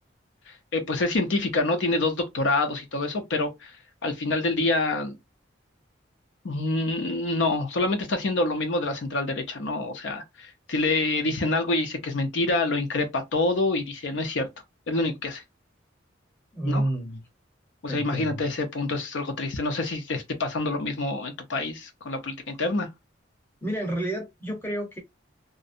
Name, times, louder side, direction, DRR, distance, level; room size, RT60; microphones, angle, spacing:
voice 1, 0.5-3.8 4.0-5.2 6.4-14.5 14.9-15.4 16.6-16.8 17.8-22.9, left 2 dB, 70° left, 0.5 m, -27 dB
voice 2, 16.5-17.2 17.9-18.4 23.6-25.0, right 1 dB, 10° left, 0.8 m, -29 dB
2.5 x 2.1 x 2.5 m
head